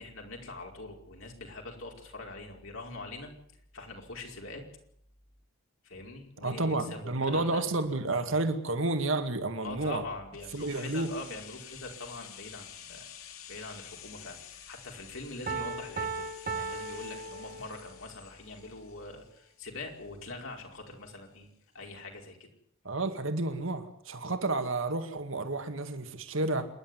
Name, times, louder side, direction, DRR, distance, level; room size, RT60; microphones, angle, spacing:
voice 1, 0.0-3.3 3.7-4.6 5.8-7.6 9.6-13.1 13.5-21.5 21.7-22.5, left 2 dB, 70° left, 5.1 m, -43 dB
voice 2, 6.4-10.0 10.5-11.1 22.8-26.7, right 2 dB, 70° right, 2.2 m, -30 dB
sound 1, 10.3-20.2 20.5-20.6, left 9 dB, 90° left, 2.5 m, -50 dB
Piano, 15.5-18.0, right 4 dB, 40° right, 1.4 m, -36 dB
27.5 x 11.5 x 9.6 m
head